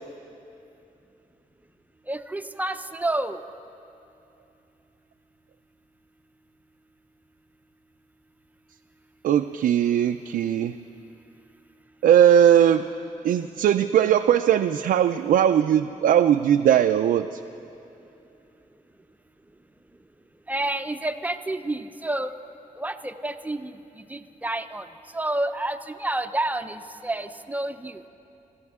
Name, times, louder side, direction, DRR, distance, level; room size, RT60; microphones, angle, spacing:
voice 1, 2.1-3.4 20.5-22.3 22.8-24.9 25.1-28.0, right 1 dB, 10° right, 9 dB, 0.6 m, -29 dB
voice 2, 9.2-10.7 12.0-12.9 13.2-17.4, right 10 dB, 85° right, 6 dB, 0.4 m, -19 dB
27.0 x 13.0 x 3.6 m, 2.8 s
cardioid pair, 100°, 14 cm